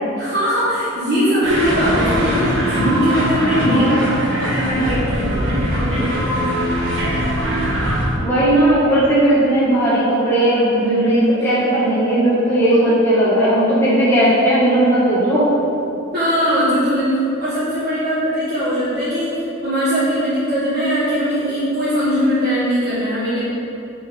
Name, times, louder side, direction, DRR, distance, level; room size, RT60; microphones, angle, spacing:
voice 1, 0.2-4.0 4.4-6.0 11.4-11.9 12.7-12.8 16.1-23.4, equal, 50° right, -13 dB, 1.2 m, -20 dB
sound 1, 1.4-8.1, equal, 70° right, 1.1 m, -21 dB
voice 2, 3.7-4.2 8.2-15.5, right 1 dB, 10° left, -10 dB, 1.1 m, -16 dB
4.9 x 3.8 x 5.0 m, 2.8 s
head